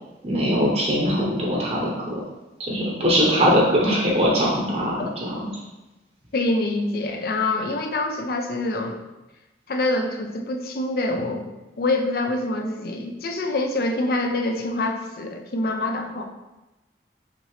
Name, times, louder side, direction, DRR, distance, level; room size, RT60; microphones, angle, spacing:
voice 1, 0.2-2.2 2.6-5.3, equal, 35° right, -3 dB, 0.8 m, -21 dB
voice 2, 6.3-9.0 9.7-11.5 11.8-16.3, left 2 dB, 55° left, 4 dB, 0.4 m, -25 dB
5.7 x 2.8 x 3.2 m, 1.0 s
head